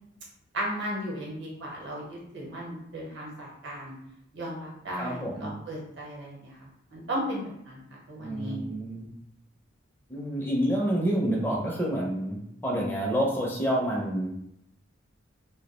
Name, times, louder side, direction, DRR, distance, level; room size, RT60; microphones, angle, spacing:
voice 1, 0.5-3.9 4.3-6.6 6.9-7.8 8.1-8.6, equal, 60° right, -3 dB, 0.9 m, -35 dB
voice 2, 5.0-5.5 8.2-9.1 10.1-14.4, equal, 10° left, -3 dB, 0.4 m, -28 dB
2.3 x 2.0 x 2.9 m, 0.77 s
head